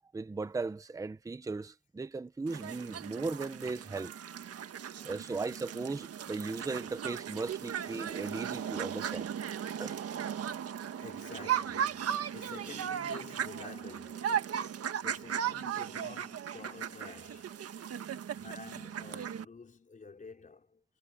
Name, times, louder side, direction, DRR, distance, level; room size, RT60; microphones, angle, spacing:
voice 1, 0.1-4.1 5.0-9.3 9.8-10.0, right 3 dB, 10° right, 0.8 m, -37 dB
sound 1, 2.5-19.4, right 9 dB, 40° right, 1.6 m, -37 dB
voice 2, 4.4-5.2 5.5-5.7 8.4-9.2 10.7-18.1 18.3-20.8, left 4 dB, 20° left, 4.7 m, -51 dB
cardioid pair, 135°, 38 cm